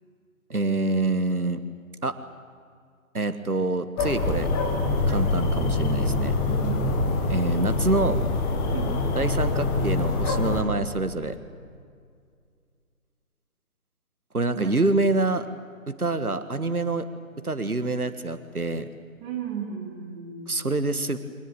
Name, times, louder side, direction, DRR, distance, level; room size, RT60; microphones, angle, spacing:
voice 1, 0.5-1.6 2.0-2.1 3.1-4.5 5.1-6.3 7.3-8.2 9.1-11.4 14.3-15.5 15.9-17.1 17.4-18.9 20.5-21.2, right 2 dB, 85° right, 10 dB, 1.7 m, -26 dB
sound 1, 4.0-10.6, left 2 dB, 10° left, 1.5 m, -25 dB
voice 2, 6.5-7.0 8.7-9.0 14.5-14.7 19.2-20.7, right 6 dB, 15° right, -1 dB, 3.5 m, -35 dB
24.0 x 19.5 x 8.9 m, 2.2 s
figure-of-eight pair, 145°, 43 cm